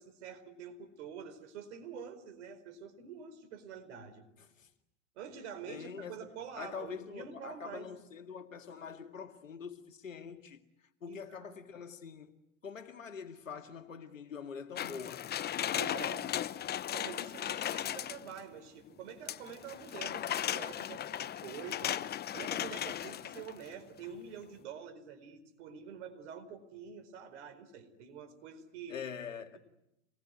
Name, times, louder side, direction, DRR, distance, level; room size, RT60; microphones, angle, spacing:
voice 1, 0.0-4.2 5.2-7.9 11.1-11.5 15.7-16.3 16.9-22.0 22.3-29.0, right 6 dB, 65° right, 4.6 m, -47 dB
voice 2, 5.7-6.2 6.6-10.6 11.0-12.3 12.6-15.3 28.9-29.6, left 6 dB, 85° left, 2.2 m, -44 dB
sound 1, 14.8-18.4 19.3-23.7 24.0-24.1, left 11 dB, 25° left, 0.9 m, -36 dB
27.5 x 20.0 x 9.5 m
hypercardioid pair, 90°, 38 cm